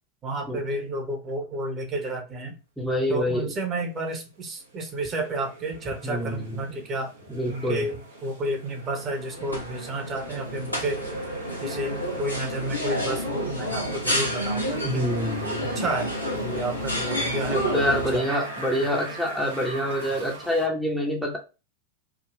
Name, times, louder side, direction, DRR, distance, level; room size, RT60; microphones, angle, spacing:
voice 1, 0.2-2.5 3.1-7.1 7.5-11.0 11.6-15.1 15.6-18.3, right 1 dB, 25° right, 3 dB, 1.0 m, -31 dB
voice 2, 2.8-3.5 6.0-6.6 7.3-7.8 14.8-15.8 17.5-21.4, equal, ahead, -2 dB, 0.7 m, -26 dB
sound 1, 4.6-20.7, right 1 dB, 65° right, 0.9 m, -40 dB
sound 2, 9.0-18.2, equal, 90° left, 0.9 m, -30 dB
3.6 x 2.4 x 3.0 m, 0.30 s
figure-of-eight pair, 90°, 0 cm